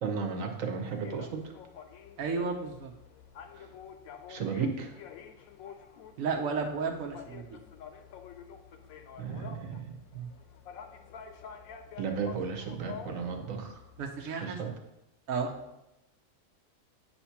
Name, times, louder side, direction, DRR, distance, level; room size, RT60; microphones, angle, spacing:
voice 1, 0.0-1.5 3.5-3.7 4.3-5.0 9.2-9.9 10.1-10.3 12.0-13.8 14.2-14.7, right 5 dB, 70° right, 4 dB, 1.3 m, -34 dB
sound 1, 0.8-14.1, left 7 dB, 80° left, 1.0 m, -48 dB
voice 2, 2.2-2.9 6.2-7.6 14.0-14.8 15.3-15.6, right 4 dB, 85° right, 2 dB, 1.2 m, -33 dB
8.7 x 2.9 x 5.7 m, 0.89 s
omnidirectional pair, 1.5 m